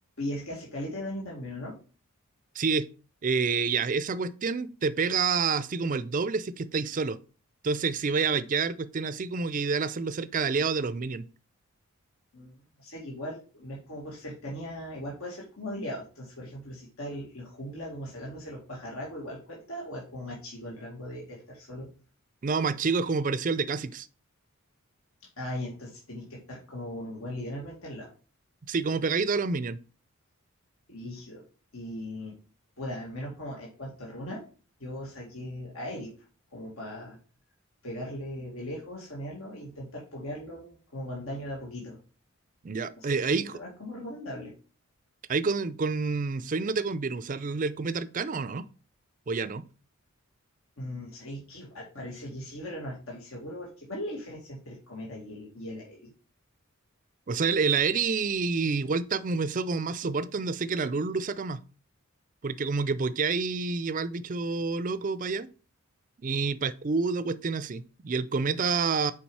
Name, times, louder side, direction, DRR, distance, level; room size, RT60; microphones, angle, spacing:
voice 1, 0.2-1.8 12.3-21.9 25.4-28.1 30.9-31.4 31.7-32.4 32.8-34.4 34.8-36.1 36.5-37.2 37.8-42.0 43.0-44.5 50.8-56.1, left 1 dB, 75° left, 2.1 m, -39 dB
voice 2, 2.6-2.9 3.2-7.2 7.6-11.2 22.4-24.1 28.6-29.8 42.6-43.6 45.3-48.7 49.3-49.6 57.3-61.6 62.4-65.5 66.2-69.1, right 4 dB, 40° right, 0.4 m, -28 dB
7.1 x 4.8 x 4.7 m
head